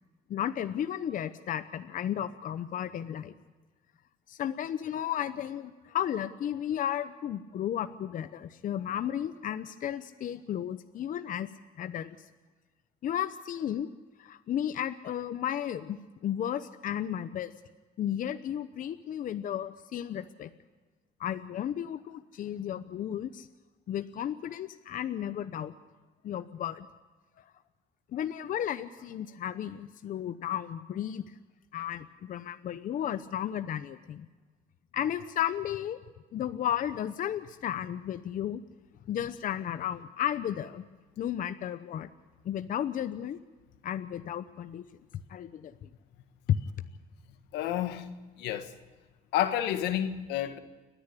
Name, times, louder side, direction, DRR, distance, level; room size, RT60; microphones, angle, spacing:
voice 1, 0.3-3.3 4.3-11.5 11.8-12.2 13.0-13.9 14.2-16.0 16.2-17.5 18.0-20.5 21.2-23.5 23.9-25.7 26.2-26.9 27.4-27.5 28.1-31.2 31.7-34.3 34.9-36.0 36.3-38.6 39.1-40.9 41.2-42.1 42.4-43.4 43.8-44.8 45.3-45.9, left 10 dB, 55° left, 0.8 m, -34 dB
voice 2, 47.5-48.1 48.4-48.7 49.3-50.6, left 11 dB, 90° left, 1.6 m, -30 dB
29.5 x 10.0 x 9.8 m
cardioid pair, 110°, 17 cm